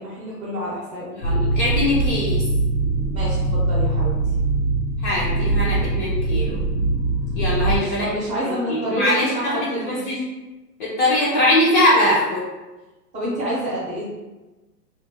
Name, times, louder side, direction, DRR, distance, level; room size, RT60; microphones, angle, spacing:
voice 1, 0.0-1.1 3.1-4.3 7.6-10.2 13.1-14.0, equal, 15° right, -8 dB, 0.6 m, -28 dB
sound 1, 1.2-7.8, right 2 dB, 90° left, 0.8 m, -22 dB
voice 2, 1.2-2.4 5.0-6.6 7.4-8.1 8.7-10.2 10.8-12.4, left 1 dB, 35° left, -6 dB, 0.5 m, -21 dB
2.4 x 2.1 x 2.7 m, 1.1 s
hypercardioid pair, 120°, 48 cm